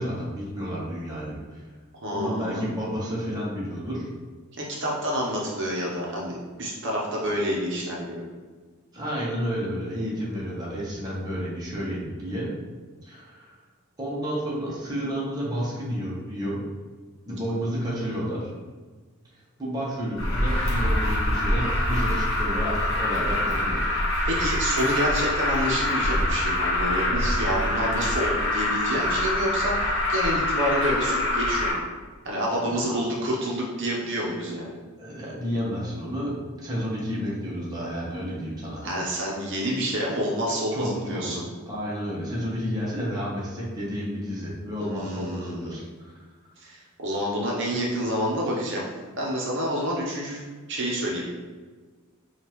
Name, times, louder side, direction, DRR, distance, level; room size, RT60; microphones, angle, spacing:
voice 1, 0.0-1.6 2.1-4.1 8.9-12.5 13.0-13.5 14.0-16.6 17.3-18.5 19.6-23.8 24.1-24.2 32.6-33.0 35.0-36.3 36.6-38.9 40.7-41.3 41.7-46.1, equal, 20° right, -6 dB, 0.8 m, -31 dB
voice 2, 2.0-2.7 4.6-8.2 24.2-31.8 32.2-34.8 38.8-41.5 44.8-45.9 46.6-48.8 49.1-50.4 50.7-51.3, equal, 55° right, -3 dB, 0.8 m, -28 dB
Alarm, 20.2-31.7, left 1 dB, 55° left, 1.0 m, -25 dB
5.1 x 2.4 x 2.9 m, 1.4 s
head